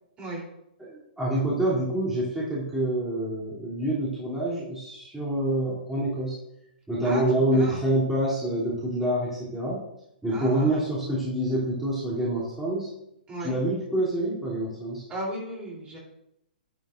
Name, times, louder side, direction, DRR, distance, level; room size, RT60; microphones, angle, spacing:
voice 1, 0.8-6.4 6.9-9.8 10.2-12.9 13.4-15.0, right 1 dB, 5° right, -9 dB, 3.3 m, -27 dB
voice 2, 7.5-7.8 10.3-10.8 13.3-13.6 15.1-16.0, right 1 dB, 20° right, -3 dB, 3.7 m, -35 dB
11.0 x 9.0 x 2.7 m, 0.81 s
hypercardioid pair, 135°, 5 cm